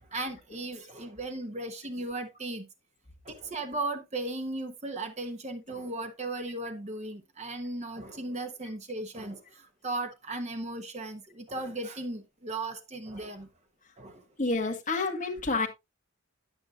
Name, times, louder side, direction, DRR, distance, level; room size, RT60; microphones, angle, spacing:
voice 1, 0.0-2.7 3.2-13.5 14.0-14.2, right 2 dB, 30° right, 1.0 m, -36 dB
voice 2, 14.4-15.7, left 3 dB, 35° left, 1.7 m, -29 dB
9.5 x 9.1 x 2.5 m
head